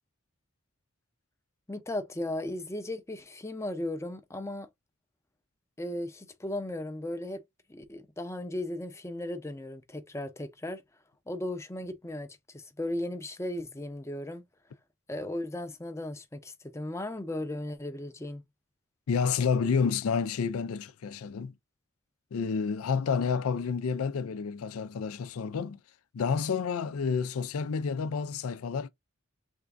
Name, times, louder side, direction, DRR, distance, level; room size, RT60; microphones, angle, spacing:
voice 1, 1.7-4.7 5.8-7.4 7.7-10.8 11.3-14.5 15.1-18.4, left 1 dB, 15° left, 0.5 m, -36 dB
voice 2, 19.1-21.5 22.3-25.8 26.1-28.9, left 5 dB, 90° left, 0.4 m, -29 dB
3.5 x 2.5 x 3.3 m
head